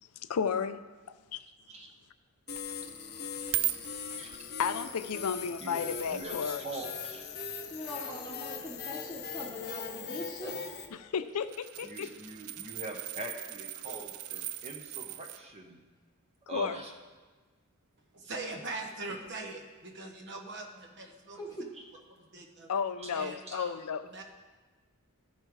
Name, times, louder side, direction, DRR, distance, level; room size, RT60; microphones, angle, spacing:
voice 1, 0.3-0.8 1.3-1.5 4.6-6.7 10.9-12.1 16.5-16.8 22.7-24.0, left 6 dB, 85° left, 12 dB, 0.5 m, -33 dB
sound 1, 2.5-10.9, left 6 dB, 45° left, 0.7 m, -40 dB
sound 2, 2.5-2.6 3.1-4.5 5.2-5.3 6.0-6.5 6.8-6.9 7.7-8.8 9.9-10.2 10.5-10.6 11.1-15.4 19.3-19.4, right 15 dB, 70° right, 0.4 m, -38 dB
voice 2, 5.6-7.2 11.8-15.8 16.5-16.9 21.7-21.8 23.0-23.1 23.5-23.6, right 1 dB, 30° right, 2 dB, 0.9 m, -43 dB
voice 3, 7.7-10.5 10.8-10.9 13.8-14.1 21.3-21.6, left 1 dB, 15° left, -3 dB, 1.0 m, -41 dB
voice 4, 18.1-21.4 21.9-22.7 23.1-23.8 24.1-24.2, right 2 dB, 55° right, 4 dB, 1.1 m, -42 dB
13.5 x 5.5 x 4.7 m, 1.3 s
head